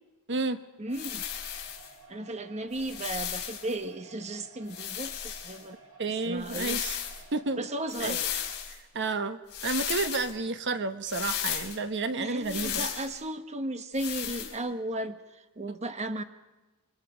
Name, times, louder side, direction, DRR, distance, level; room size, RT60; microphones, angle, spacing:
voice 1, 0.8-1.2 2.1-5.8 6.1-6.8 7.6-8.3 12.1-16.2, right 1 dB, 30° right, 8 dB, 1.1 m, -35 dB
sound 1, 0.9-1.9 2.7-3.7 4.7-5.6 6.4-7.2 7.9-8.8 9.5-10.3 11.0-11.8 12.4-13.1 13.9-14.5, left 10 dB, 50° left, 5.0 m, -35 dB
sound 2, 0.9-8.6, right 3 dB, 75° right, 7.7 m, -54 dB
voice 2, 6.0-7.0 7.3-7.7 8.0-8.2 8.7-12.8, right 3 dB, 55° right, 9 dB, 1.1 m, -31 dB
27.5 x 24.5 x 5.1 m, 1.1 s
head